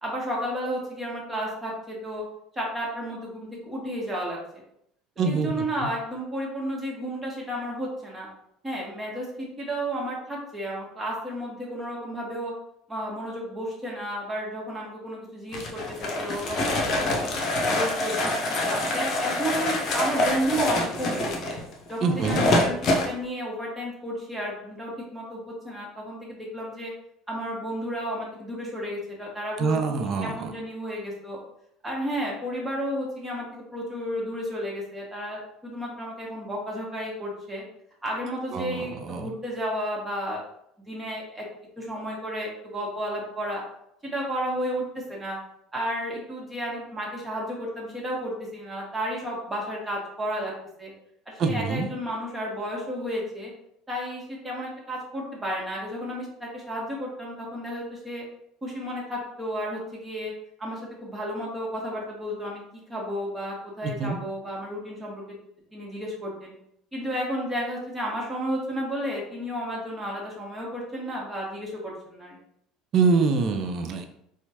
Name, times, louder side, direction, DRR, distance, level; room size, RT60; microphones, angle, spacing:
voice 1, 0.0-2.2 2.5-4.4 5.2-8.3 8.6-12.5 12.9-17.3 17.7-21.6 21.9-22.8 23.0-26.9 27.3-31.4 31.8-37.6 38.0-40.4 40.9-41.4 41.8-43.6 44.0-45.4 45.7-50.5 50.8-50.9 51.4-53.5 53.9-58.2 58.6-60.3 60.6-62.6 62.9-65.4 65.7-66.5 66.9-72.4, equal, 15° right, -3 dB, 1.5 m, -32 dB
voice 2, 5.2-5.5 5.8-5.9 22.0-22.4 29.6-30.5 38.5-39.3 51.4-51.9 63.8-64.2 72.9-74.1, right 4 dB, 45° right, 5 dB, 0.5 m, -25 dB
sound 1, 15.5-23.1, left 1 dB, 45° left, 0.8 m, -25 dB
4.3 x 2.4 x 2.9 m, 0.74 s
hypercardioid pair, 65°, 0 cm